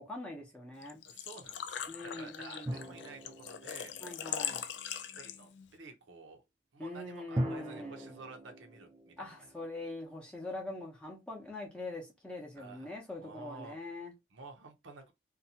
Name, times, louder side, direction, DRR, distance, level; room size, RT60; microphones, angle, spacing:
voice 1, 0.0-1.0 1.9-2.9 4.0-4.6 6.8-8.1 9.2-14.1, left 2 dB, 5° left, 0.7 m, -43 dB
Engine / Trickle dribble / Fill (with liquid), 0.8-5.7, left 9 dB, 70° left, 0.3 m, -41 dB
voice 2, 1.0-4.0 5.2-6.4 6.7-9.3 12.6-13.8 14.3-15.1, right 3 dB, 85° right, 0.7 m, -51 dB
sound 1, 2.7-5.0 7.4-10.3, right 1 dB, 20° right, 0.4 m, -41 dB
2.7 x 2.2 x 2.7 m
head